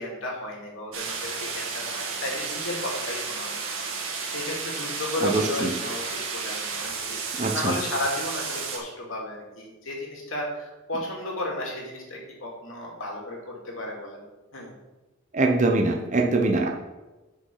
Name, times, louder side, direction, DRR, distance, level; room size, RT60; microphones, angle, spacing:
voice 1, 0.0-3.6 4.3-14.3 14.5-14.7, left 1 dB, 65° left, -1 dB, 2.7 m, -33 dB
sound 1, 0.9-8.8, right 5 dB, 70° right, 1.9 m, -32 dB
voice 2, 5.2-5.7 7.4-7.7 15.3-16.7, right 2 dB, 35° right, 2 dB, 0.9 m, -23 dB
9.2 x 6.4 x 5.5 m, 1.1 s
head